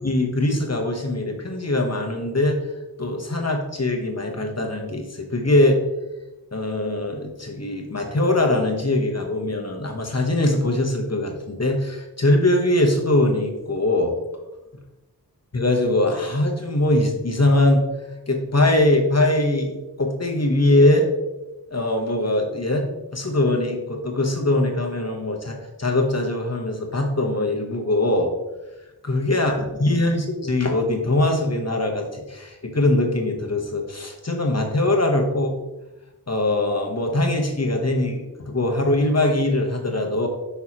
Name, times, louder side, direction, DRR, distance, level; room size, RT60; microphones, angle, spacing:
voice 1, 0.0-2.6 3.0-5.8 6.5-14.2 15.5-17.8 18.3-21.1 21.7-22.9 23.1-28.3 29.0-35.6 36.3-40.3, left 1 dB, 40° left, 1 dB, 1.0 m, -22 dB
6.3 x 5.5 x 2.9 m, 1.0 s
wide cardioid pair, 45°, 38 cm